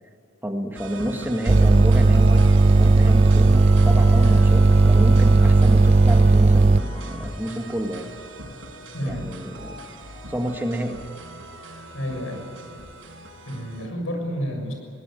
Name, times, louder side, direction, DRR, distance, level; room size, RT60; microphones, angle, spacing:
voice 1, 0.4-8.1 9.1-9.9 10.3-11.0, right 1 dB, 10° right, 4 dB, 1.7 m, -30 dB
sound 1, 0.7-13.9, right 1 dB, 75° right, 4.9 m, -38 dB
sound 2, 1.5-6.8, right 3 dB, 35° right, 0.6 m, -15 dB
voice 2, 8.9-9.3 11.9-12.5 13.4-14.7, equal, 85° left, 3 dB, 6.6 m, -30 dB
22.5 x 18.5 x 9.1 m, 2.7 s
head